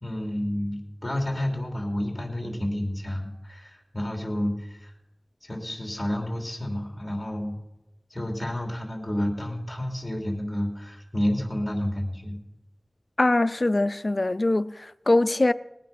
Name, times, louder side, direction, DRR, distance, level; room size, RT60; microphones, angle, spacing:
voice 1, 0.0-4.9 5.4-7.6 8.1-12.4, left 1 dB, 20° left, 3.1 m, -30 dB
voice 2, 13.2-15.5, left 2 dB, 45° left, 0.4 m, -22 dB
19.5 x 9.3 x 5.9 m
wide cardioid pair, 65°, 0 cm